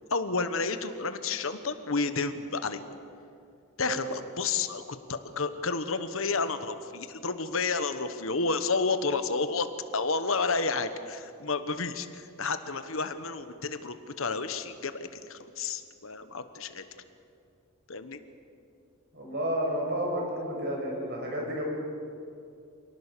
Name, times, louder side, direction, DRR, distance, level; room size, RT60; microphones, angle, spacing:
voice 1, 0.1-2.8 3.8-9.7 9.9-16.8 17.9-18.2, left 4 dB, 70° left, 10 dB, 1.2 m, -31 dB
voice 2, 19.1-21.6, equal, 50° right, -1 dB, 6.5 m, -31 dB
27.0 x 18.5 x 6.8 m, 2.5 s
head